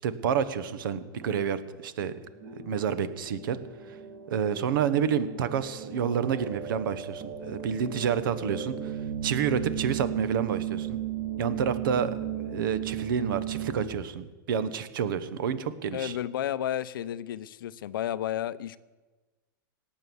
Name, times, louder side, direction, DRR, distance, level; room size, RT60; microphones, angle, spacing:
voice 1, 0.0-2.1 2.6-3.6 4.3-8.9 9.2-11.0 11.4-16.1, right 7 dB, 75° right, 13 dB, 1.1 m, -29 dB
sound 1, 2.1-13.9, right 9 dB, 50° right, 2.7 m, -36 dB
voice 2, 15.9-18.8, left 11 dB, 80° left, 16 dB, 0.6 m, -32 dB
17.5 x 7.6 x 7.0 m, 1.2 s
hypercardioid pair, 125°, 11 cm